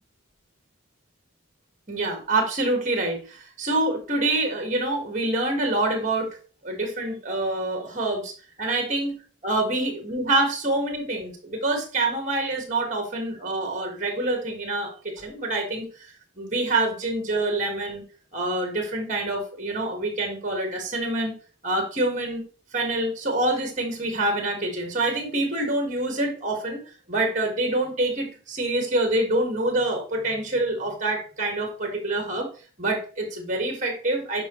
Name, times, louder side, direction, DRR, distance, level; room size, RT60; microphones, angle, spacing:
voice 1, 1.9-6.3 6.6-8.3 8.6-9.1 9.4-18.0 18.3-21.3 21.6-22.4 22.7-32.5 32.8-34.5, right 2 dB, 35° right, 3 dB, 2.1 m, -26 dB
11.5 x 5.2 x 3.3 m, 0.38 s
head